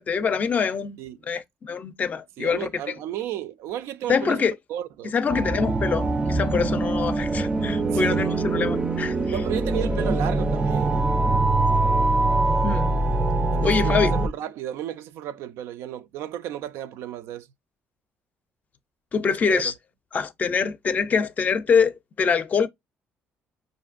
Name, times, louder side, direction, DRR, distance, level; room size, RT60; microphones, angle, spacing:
voice 1, 0.0-1.0 1.3-2.7 4.1-4.5 5.1-9.2 12.6-12.9 13.6-14.1 19.1-19.7 20.1-22.7, left 5 dB, 35° left, 0.4 m, -24 dB
voice 2, 2.4-4.4 4.7-5.1 7.9-8.5 9.3-11.1 13.5-17.5 19.3-19.7, right 11 dB, 85° right, 0.4 m, -33 dB
sound 1, 5.3-14.3, right 2 dB, 20° right, 0.4 m, -23 dB
5.1 x 2.6 x 2.4 m
cardioid pair, 120°, 4 cm